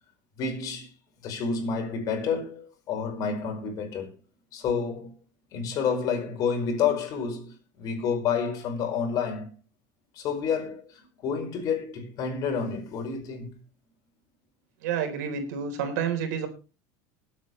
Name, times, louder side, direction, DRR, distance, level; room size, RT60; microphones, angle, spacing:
voice 1, 0.4-0.9 1.2-4.2 4.5-5.1 5.5-9.5 10.2-13.5, left 6 dB, 40° left, 5.2 m, -29 dB
voice 2, 14.8-16.5, right 7 dB, 85° right, 4.0 m, -29 dB
20.5 x 8.5 x 3.3 m
supercardioid pair, 150°, 9 cm